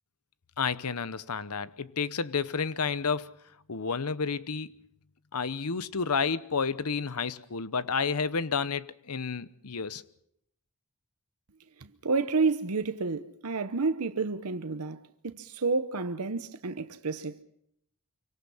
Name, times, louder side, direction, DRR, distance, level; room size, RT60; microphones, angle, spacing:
voice 1, 0.6-3.3 3.7-4.8 5.3-10.0, left 5 dB, 85° left, 0.9 m, -30 dB
voice 2, 11.8-17.4, right 4 dB, 85° right, 0.9 m, -30 dB
26.0 x 24.5 x 5.6 m
head